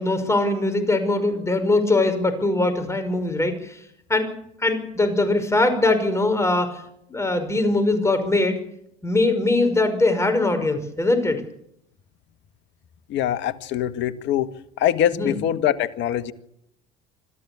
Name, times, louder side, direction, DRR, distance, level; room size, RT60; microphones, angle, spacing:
voice 1, 0.0-3.8 4.1-4.3 4.6-6.8 7.1-8.6 9.0-11.4 15.1-15.4, left 2 dB, 15° left, 8 dB, 5.5 m, -21 dB
voice 2, 13.1-14.5 14.8-16.3, left 11 dB, 65° left, 11 dB, 1.6 m, -23 dB
26.0 x 14.0 x 8.7 m, 0.75 s
hypercardioid pair, 80°, 20 cm